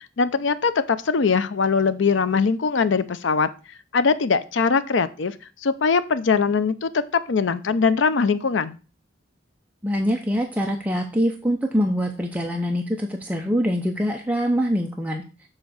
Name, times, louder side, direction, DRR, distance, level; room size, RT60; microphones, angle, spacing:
voice 1, 0.0-3.5 3.9-5.3 5.6-7.0 7.3-8.8, left 5 dB, 75° left, 13 dB, 0.6 m, -21 dB
voice 2, 9.8-15.2, equal, 10° right, 1 dB, 0.7 m, -24 dB
7.2 x 3.8 x 6.2 m, 0.34 s
head